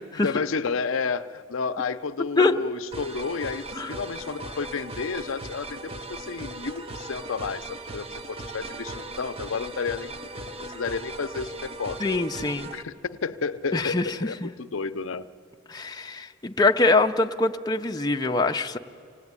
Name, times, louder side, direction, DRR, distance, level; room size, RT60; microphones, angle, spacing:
voice 1, 0.1-12.0 12.7-15.3, left 5 dB, 70° left, 11 dB, 0.6 m, -31 dB
sound 1, 2.9-12.8, right 2 dB, 30° right, 0.8 m, -38 dB
voice 2, 12.0-12.7 13.7-14.5 15.7-18.8, left 3 dB, 20° left, 3 dB, 0.6 m, -24 dB
26.0 x 17.5 x 9.6 m, 2.5 s
head